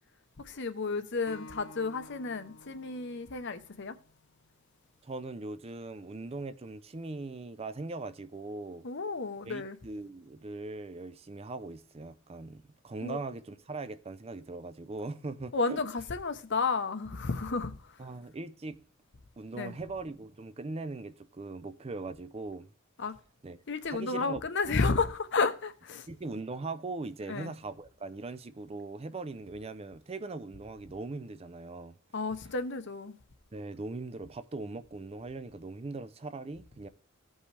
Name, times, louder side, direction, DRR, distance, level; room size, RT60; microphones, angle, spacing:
voice 1, 0.4-3.9 8.8-9.8 13.0-13.2 15.5-17.8 19.6-19.7 23.0-23.1 23.7-26.1 27.3-27.5 32.1-33.2, left 4 dB, 55° left, 0.8 m, -32 dB
Acoustic guitar, 1.3-4.6, left 1 dB, 90° left, 1.5 m, -52 dB
voice 2, 5.0-8.9 9.4-15.8 18.0-18.8 19.4-22.7 23.4-23.6 23.9-24.4 26.1-31.9 33.5-36.9, right 3 dB, 30° right, 0.5 m, -40 dB
16.5 x 5.5 x 3.3 m
head